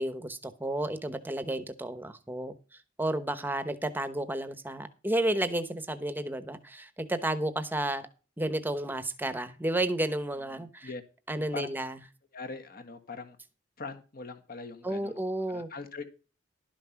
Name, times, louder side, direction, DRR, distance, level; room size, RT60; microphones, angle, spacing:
voice 1, 0.0-2.5 3.0-8.1 8.4-10.9 11.3-12.0 14.8-15.7, right 1 dB, 10° right, 11 dB, 0.9 m, -32 dB
voice 2, 10.5-11.0 11.4-11.7 12.3-13.4 13.8-15.2 15.5-16.0, left 4 dB, 50° left, 7 dB, 1.5 m, -42 dB
12.0 x 5.9 x 5.8 m, 0.33 s
head